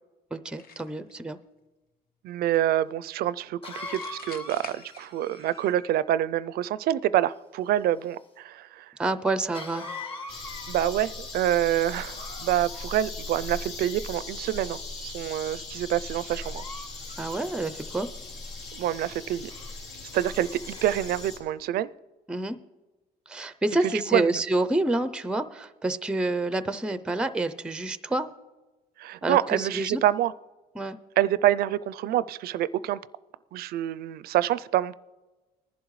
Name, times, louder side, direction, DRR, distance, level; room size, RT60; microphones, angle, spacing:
voice 1, 0.3-1.4 9.0-9.9 17.2-18.1 22.3-22.6 23.3-28.3 29.2-30.0 30.7-31.0, right 2 dB, 5° right, 13 dB, 0.5 m, -28 dB
sound 1, 0.6-1.1 3.9-5.5, left 6 dB, 60° left, 1.1 m, -46 dB
voice 2, 2.2-8.9 10.7-16.6 18.7-19.5 20.1-21.9 24.1-24.3 29.0-30.3 31.2-33.0 33.5-34.9, right 12 dB, 65° right, 17 dB, 0.4 m, -26 dB
Cough, 2.5-2.6 3.6-6.0 9.5-11.3 12.0-12.9 13.7-14.3 15.0-15.3 16.2-17.9 19.5-19.8 20.2-21.1, left 2 dB, 35° left, 1.4 m, -43 dB
sound 2, 10.3-21.4, left 3 dB, 85° left, 2.4 m, -39 dB
20.0 x 11.0 x 3.1 m, 1.2 s
cardioid pair, 110°, 17 cm